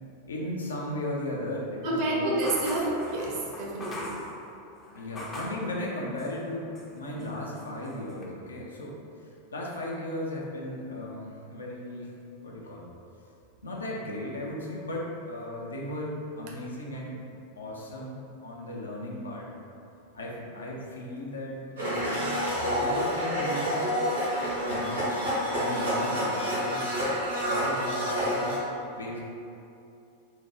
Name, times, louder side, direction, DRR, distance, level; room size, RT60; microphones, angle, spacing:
voice 1, 0.3-2.4 5.0-12.1 12.4-12.9 13.6-17.2 17.6-19.5 20.1-22.2 22.6-23.8 24.7-25.3 25.6-27.0 27.4-28.6 29.0-29.2, left 1 dB, 70° left, -3 dB, 0.5 m, -36 dB
voice 2, 1.8-4.1, right 1 dB, 45° right, -3 dB, 0.6 m, -29 dB
sound 1, 2.4-5.7 6.2-6.9 7.2-8.2, left 1 dB, 20° left, 0.5 m, -41 dB
Domestic sounds home sounds, 21.8-28.6, equal, 75° right, 1.0 m, -28 dB
3.6 x 2.1 x 3.0 m, 2.7 s
figure-of-eight pair, 90°, 0 cm